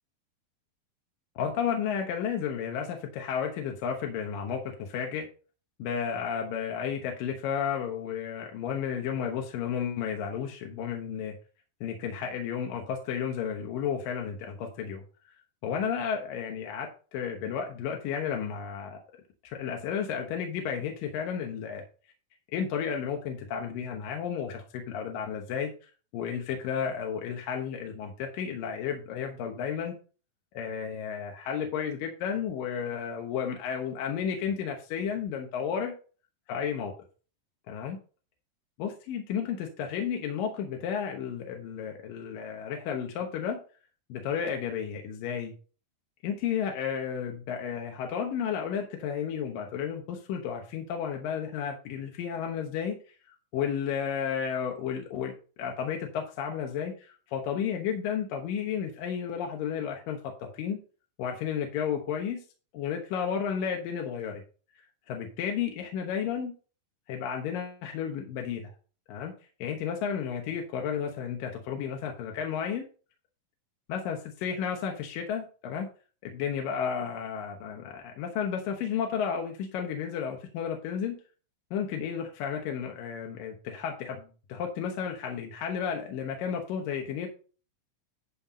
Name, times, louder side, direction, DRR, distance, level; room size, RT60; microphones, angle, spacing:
voice 1, 1.4-5.3 5.8-11.4 11.8-15.0 15.6-19.0 19.4-21.8 22.5-29.9 30.5-35.9 36.5-36.9 37.7-38.0 38.8-43.6 44.1-45.5 46.2-53.0 53.5-55.3 55.6-60.8 61.2-62.4 62.7-64.4 65.1-66.5 67.1-68.7 69.1-69.3 69.6-72.9 73.9-75.9 76.2-81.2 81.7-87.3, left 7 dB, 75° left, 3 dB, 2.8 m, -32 dB
11.0 x 4.4 x 5.1 m, 0.38 s
omnidirectional pair, 4.1 m